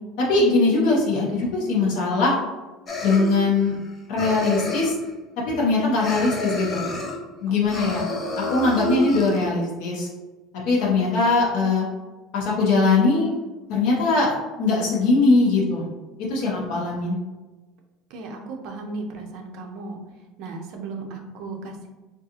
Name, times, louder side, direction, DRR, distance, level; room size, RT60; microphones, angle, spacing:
voice 1, 0.2-2.3 3.0-3.8 4.1-4.9 5.5-6.8 7.4-8.0 8.5-10.1 10.7-11.9 12.3-13.4 13.7-15.8 16.3-17.2, left 3 dB, 60° left, -4 dB, 0.7 m, -21 dB
sound 1, 2.9-3.9 4.2-5.1 6.0-7.2 7.6-9.5, left 2 dB, 20° left, 0.4 m, -29 dB
voice 2, 7.5-8.0 16.4-16.7 18.1-20.0 20.4-21.9, right 3 dB, 50° right, 2 dB, 0.5 m, -36 dB
3.6 x 2.3 x 2.8 m, 1.2 s
cardioid pair, 175°, 0 cm